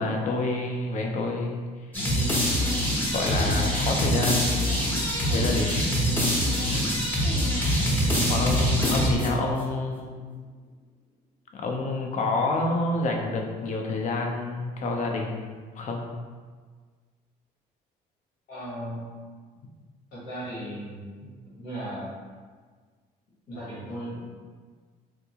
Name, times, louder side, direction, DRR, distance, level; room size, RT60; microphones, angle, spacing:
voice 1, 0.0-1.6 3.1-4.6 5.3-5.7 6.7-6.9 8.3-10.2 11.5-16.0, left 2 dB, 45° left, 1 dB, 0.5 m, -28 dB
sound 1, 1.9-9.6, equal, 10° left, 0.8 m, -24 dB
voice 2, 18.5-19.0 20.1-22.2 23.5-24.2, right 1 dB, 85° left, -10 dB, 1.3 m, -37 dB
3.5 x 2.5 x 2.8 m, 1.5 s
cardioid pair, 110°, 17 cm